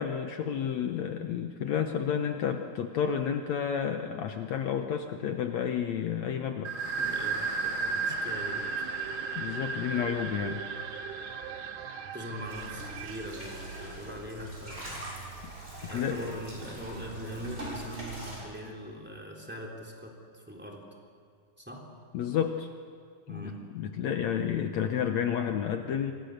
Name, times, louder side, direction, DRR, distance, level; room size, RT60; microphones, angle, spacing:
voice 1, 0.0-6.7 9.3-10.6 15.9-16.2 22.1-22.7 23.3-26.1, left 8 dB, 70° left, 5 dB, 1.8 m, -31 dB
sound 1, 6.6-14.1, right 4 dB, 35° right, 2.9 m, -35 dB
voice 2, 7.0-8.8 12.1-15.1 15.8-20.9 21.6-21.9 23.3-23.8, equal, 5° right, 0 dB, 2.8 m, -41 dB
sound 2, 8.0-13.6, right 11 dB, 75° right, 2.0 m, -44 dB
sound 3, 12.4-18.4, right 1 dB, 20° right, 7.4 m, -42 dB
27.0 x 24.0 x 6.6 m, 2.2 s
omnidirectional pair, 4.2 m